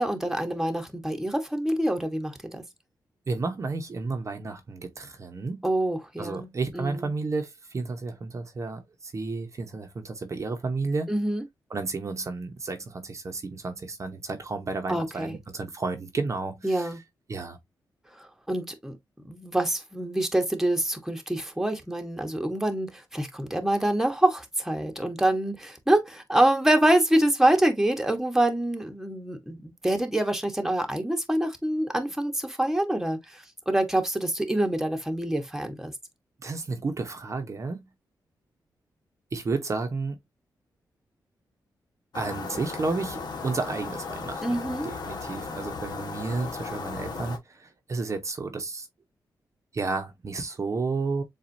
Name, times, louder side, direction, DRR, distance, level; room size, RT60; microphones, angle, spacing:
voice 1, 0.0-2.6 5.6-7.1 11.1-11.4 14.9-15.4 16.6-17.0 18.1-18.9 19.2-35.9 44.4-44.9, right 1 dB, 5° right, 1.1 m, -26 dB
voice 2, 3.3-5.7 6.2-11.1 11.7-16.9 17.3-17.6 36.4-37.9 39.3-40.2 42.1-48.9 49.7-51.2, right 3 dB, 40° right, 0.9 m, -32 dB
sound 1, 42.1-47.4, left 4 dB, 65° left, 1.2 m, -36 dB
7.2 x 2.5 x 2.6 m
cardioid pair, 100°, 8 cm